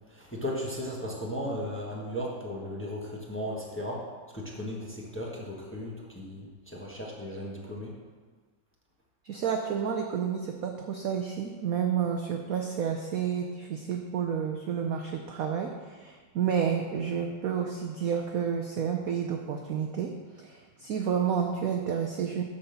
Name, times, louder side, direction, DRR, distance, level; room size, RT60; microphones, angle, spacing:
voice 1, 0.1-4.1 4.3-7.9, equal, 5° left, -4 dB, 1.2 m, -36 dB
voice 2, 9.2-22.4, right 7 dB, 65° right, 3 dB, 0.9 m, -30 dB
10.5 x 4.2 x 6.9 m, 1.5 s
omnidirectional pair, 2.1 m